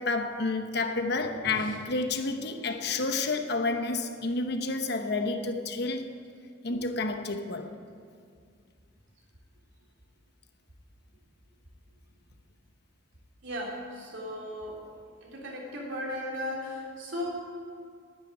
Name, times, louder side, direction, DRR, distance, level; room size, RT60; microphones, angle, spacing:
voice 1, 0.0-6.1 6.6-7.7, left 3 dB, 55° left, 1.0 m, -30 dB
voice 2, 13.4-14.8 15.2-17.3, left 1 dB, 65° right, 3.4 m, -36 dB
10.5 x 9.9 x 9.0 m
head